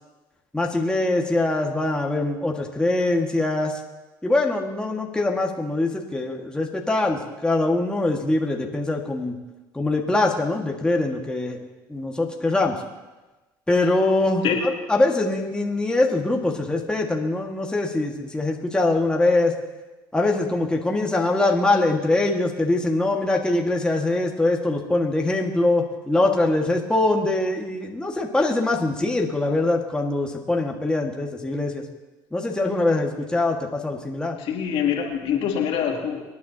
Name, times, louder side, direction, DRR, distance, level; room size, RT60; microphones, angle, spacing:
voice 1, 0.5-3.8 4.2-9.4 9.7-12.8 13.7-19.5 20.1-31.8 32.3-34.4, left 2 dB, 10° left, 0 dB, 1.8 m, -23 dB
voice 2, 34.4-36.2, left 8 dB, 60° left, 0 dB, 2.6 m, -24 dB
26.5 x 9.7 x 2.9 m, 1.1 s
hypercardioid pair, 70°, 11 cm